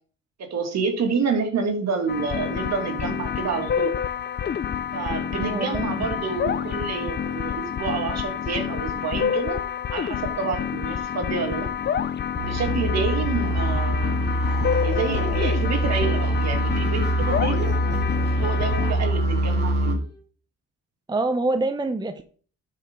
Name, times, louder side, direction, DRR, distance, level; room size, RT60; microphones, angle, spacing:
voice 1, 0.4-3.9 4.9-9.6 9.9-11.7 12.4-14.2 14.8-17.7 18.3-20.0, right 5 dB, 60° right, 3 dB, 2.3 m, -28 dB
sound 1, 2.1-18.9, left 8 dB, 35° left, 0.6 m, -28 dB
voice 2, 5.4-6.1 21.1-22.2, right 2 dB, 15° right, 8 dB, 0.7 m, -26 dB
sound 2, 12.4-20.0, right 1 dB, 35° right, 4.1 m, -24 dB
Singing, 14.8-20.2, left 5 dB, 55° left, 2.9 m, -44 dB
12.0 x 5.1 x 3.7 m, 0.42 s
cardioid pair, 90°, 30 cm